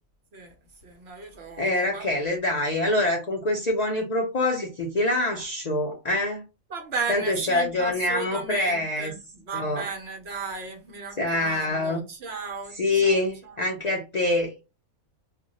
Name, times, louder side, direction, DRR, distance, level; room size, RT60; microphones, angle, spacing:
voice 1, 0.3-2.4 6.7-13.6, right 4 dB, 55° right, 1.0 m, -36 dB
voice 2, 1.6-6.4 7.1-9.1 9.5-9.8 11.2-12.0 12.8-14.7, left 2 dB, 75° left, 0.3 m, -25 dB
2.4 x 2.2 x 3.9 m
omnidirectional pair, 1.4 m